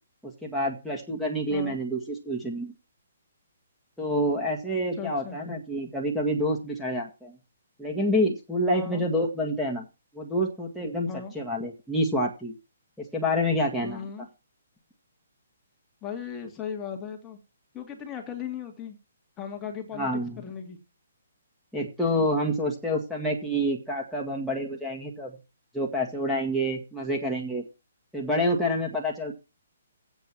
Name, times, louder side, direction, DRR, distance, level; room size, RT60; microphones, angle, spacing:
voice 1, 0.2-2.7 4.0-7.4 7.8-9.8 10.1-11.1 11.3-12.5 13.0-14.1 19.9-20.4 21.7-25.4 25.7-27.6 28.1-29.3, equal, ahead, -5 dB, 1.9 m, -28 dB
voice 2, 4.9-5.4 8.7-9.1 11.1-11.3 13.8-14.3 16.0-17.4 17.7-19.0 19.4-20.8, left 7 dB, 20° left, 3 dB, 2.0 m, -37 dB
8.2 x 6.0 x 7.5 m, 0.29 s
figure-of-eight pair, 130°, 0 cm